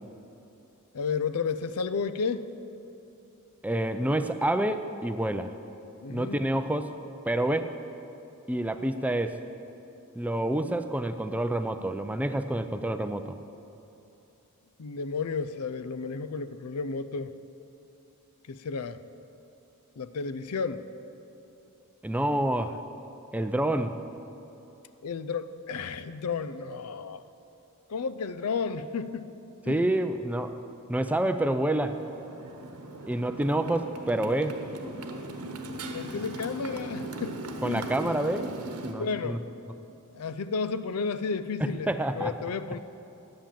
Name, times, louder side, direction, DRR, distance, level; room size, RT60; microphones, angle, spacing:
voice 1, 0.9-2.5 6.0-6.4 14.8-17.3 18.5-19.0 20.0-20.8 25.0-27.2 27.9-29.3 29.7-29.8 35.9-37.9 39.0-39.4 40.1-42.8, left 5 dB, 85° left, 12 dB, 0.5 m, -32 dB
voice 2, 3.6-5.5 6.1-7.0 7.2-7.7 8.5-9.4 10.1-13.4 22.0-22.8 23.3-24.0 29.7-30.6 30.9-32.0 33.1-34.6 37.6-38.5 38.8-39.4 41.6-42.4, right 1 dB, 5° right, 9 dB, 0.4 m, -28 dB
Motorcycle, 31.7-38.9, right 1 dB, 90° right, 1.1 m, -38 dB
11.5 x 8.7 x 7.4 m, 2.9 s
head